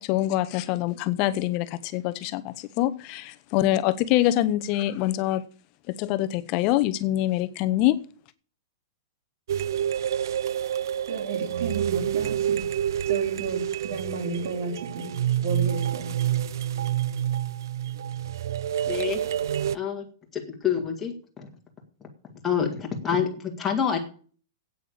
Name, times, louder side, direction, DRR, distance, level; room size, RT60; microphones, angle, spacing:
voice 1, 0.0-5.4 5.9-8.0, left 14 dB, 30° left, 0.8 m, -25 dB
sound 1, 9.5-19.8, right 10 dB, 70° right, 0.5 m, -28 dB
voice 2, 11.1-12.6 13.1-15.2 15.4-16.2, right 3 dB, 55° right, 3.1 m, -33 dB
voice 3, 18.9-19.2 19.7-20.0 20.3-21.5 22.4-24.0, left 7 dB, 10° left, 2.1 m, -27 dB
9.0 x 8.8 x 8.8 m
supercardioid pair, 170°, 2 cm